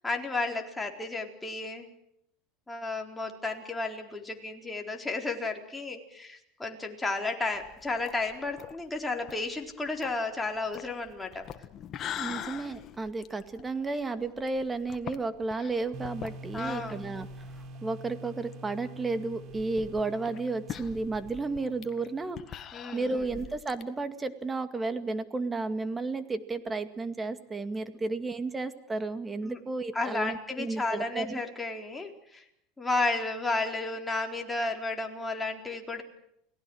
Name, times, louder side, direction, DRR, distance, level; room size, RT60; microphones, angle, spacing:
voice 1, 0.0-1.9 2.7-11.5 16.5-17.1 22.7-23.2 29.4-29.6 29.9-32.4 32.8-36.0, left 3 dB, 10° left, 2 dB, 4.1 m, -33 dB
sound 1, 7.5-17.8 18.1-18.2 18.5-18.6 19.3-23.8, left 10 dB, 40° left, 1.7 m, -43 dB
voice 2, 12.2-17.3 17.8-22.6 22.9-31.4, right 3 dB, 15° right, 10 dB, 2.2 m, -33 dB
sound 2, 15.9-22.7, right 1 dB, 45° right, 3.4 m, -46 dB
29.5 x 18.5 x 6.4 m, 0.74 s
supercardioid pair, 120°, 0 cm